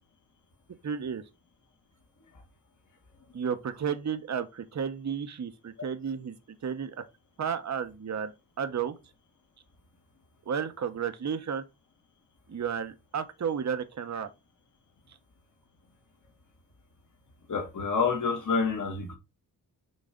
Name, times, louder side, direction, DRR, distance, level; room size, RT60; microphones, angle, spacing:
voice 1, 0.8-1.2 3.3-6.3 6.6-7.0 7.4-8.3 8.6-8.9 10.5-11.6 12.5-14.3, right 7 dB, 45° right, 0.9 m, -32 dB
voice 2, 17.5-19.1, left 5 dB, 55° left, 1.7 m, -28 dB
6.4 x 3.2 x 5.0 m
cardioid pair, 70°, 37 cm